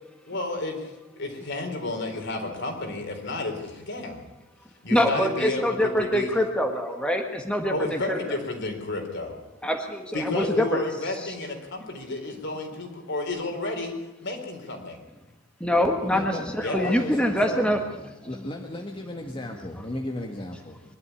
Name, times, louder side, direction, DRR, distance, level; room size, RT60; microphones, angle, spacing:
voice 1, 0.3-0.9 1.2-4.2 4.8-6.3 7.7-9.4 10.1-13.9 14.2-15.0 16.6-16.9, left 2 dB, 60° left, 4 dB, 4.2 m, -31 dB
voice 2, 4.9-8.2 9.6-10.8 15.6-17.8, equal, 5° left, 3 dB, 1.7 m, -24 dB
voice 3, 16.1-16.5 16.8-17.6 18.2-20.8, left 1 dB, 25° left, 1 dB, 1.5 m, -35 dB
23.0 x 12.0 x 9.8 m, 1.0 s
head